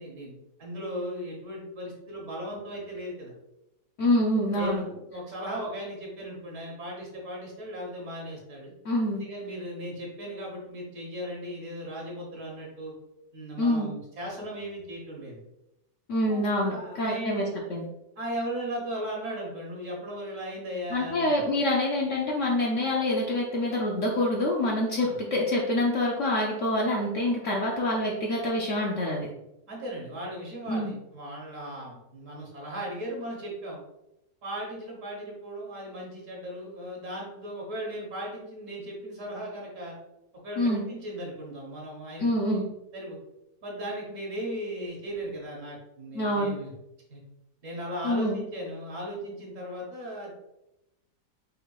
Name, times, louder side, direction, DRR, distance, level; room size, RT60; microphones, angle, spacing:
voice 1, 0.0-3.3 4.6-8.7 9.1-12.9 13.3-15.4 16.3-17.5 18.2-21.4 25.0-25.1 29.7-33.8 34.4-39.9 40.4-42.6 42.9-43.2 43.6-46.7 47.1-47.2 47.6-50.3, equal, 50° right, -2 dB, 1.5 m, -37 dB
voice 2, 4.0-4.8 8.8-9.2 13.6-13.9 16.1-17.4 17.7-17.8 20.9-29.3 30.7-30.9 40.6-40.8 42.2-42.6 46.1-46.6 48.0-48.4, left 1 dB, 60° left, -2 dB, 0.9 m, -26 dB
5.5 x 3.9 x 2.3 m, 0.88 s
omnidirectional pair, 1.8 m